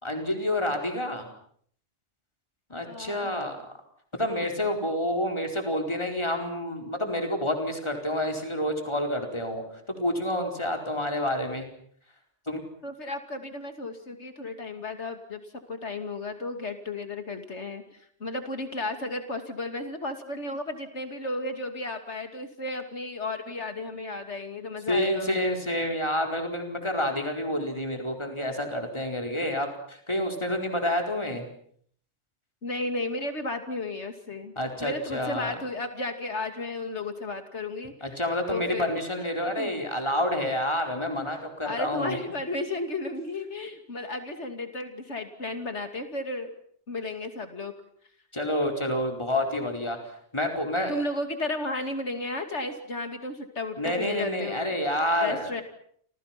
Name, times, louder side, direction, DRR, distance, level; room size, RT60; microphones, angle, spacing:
voice 1, 0.0-1.3 2.7-3.6 4.2-11.7 12.5-12.6 24.9-31.4 34.6-35.6 38.0-42.2 48.3-50.0 50.3-50.9 53.8-55.6, left 1 dB, 25° left, 3 dB, 4.6 m, -28 dB
voice 2, 2.9-3.3 12.8-17.8 18.2-25.4 32.6-34.5 34.8-38.2 38.5-39.0 39.6-39.7 41.6-46.5 46.9-47.7 50.9-54.7 55.2-55.6, left 2 dB, 90° left, 7 dB, 3.0 m, -34 dB
30.0 x 26.5 x 6.0 m, 0.63 s
omnidirectional pair, 1.1 m